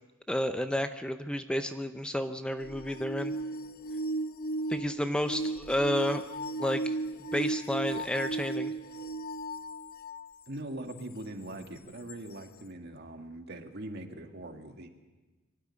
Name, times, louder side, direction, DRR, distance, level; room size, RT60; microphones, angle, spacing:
voice 1, 0.3-3.3 4.7-6.2 6.6-6.9 7.3-8.7, equal, 5° left, 8 dB, 0.6 m, -31 dB
sound 1, 2.6-10.3 11.0-11.1 12.1-12.2, right 2 dB, 45° left, 0.8 m, -35 dB
voice 2, 10.5-14.9, right 1 dB, 55° right, 5 dB, 1.9 m, -41 dB
23.0 x 12.0 x 9.7 m, 1.2 s
head